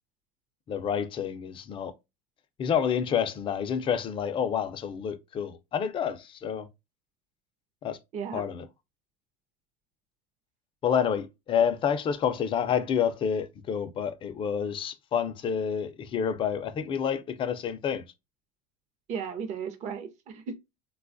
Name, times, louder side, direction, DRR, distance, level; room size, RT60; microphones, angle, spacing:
voice 1, 0.7-1.9 2.6-6.7 7.8-8.0 8.3-8.7 10.8-18.0, left 7 dB, 25° left, 0.4 m, -28 dB
voice 2, 8.1-8.4 19.1-20.6, right 6 dB, 35° right, 0.7 m, -35 dB
3.9 x 2.3 x 2.5 m
supercardioid pair, 140°, 20 cm